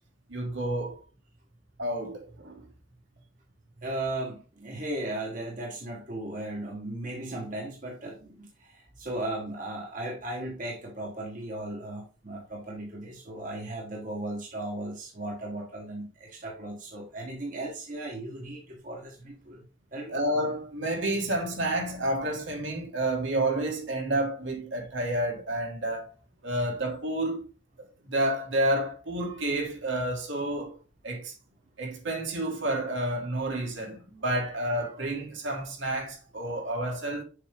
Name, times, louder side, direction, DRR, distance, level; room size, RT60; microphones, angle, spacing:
voice 1, 0.3-1.0 1.8-2.6 20.1-26.1 26.4-27.4 28.1-30.8 31.0-31.3 31.8-37.2, right 1 dB, 65° right, 1.8 m, -30 dB
voice 2, 3.8-19.6 19.9-20.2, right 1 dB, 40° right, 1.2 m, -36 dB
6.8 x 4.6 x 3.5 m
head